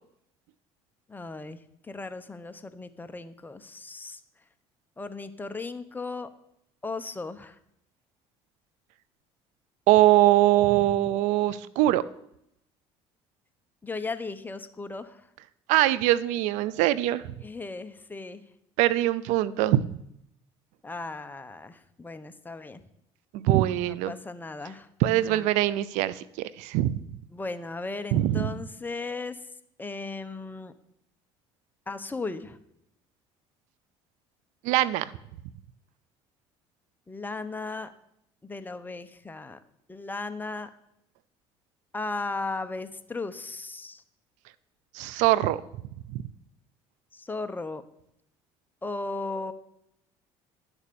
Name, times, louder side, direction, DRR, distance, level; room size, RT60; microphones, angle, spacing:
voice 1, 1.1-1.6 1.9-4.2 5.0-6.3 6.8-7.5 13.8-15.2 17.4-18.4 20.8-22.8 23.9-24.9 25.3-25.5 27.3-29.4 29.8-30.7 31.9-32.6 37.1-37.9 38.4-39.6 39.9-40.7 41.9-44.0 47.1-47.8 48.8-49.5, left 3 dB, 15° left, 10 dB, 1.0 m, -36 dB
voice 2, 9.9-12.0 15.7-17.3 18.8-19.9 23.3-24.1 25.0-27.0 28.1-28.6 34.6-35.1 44.9-45.6 46.1-46.2, right 15 dB, 80° right, 18 dB, 0.6 m, -22 dB
11.5 x 7.1 x 6.9 m, 0.77 s
supercardioid pair, 100°, 12 cm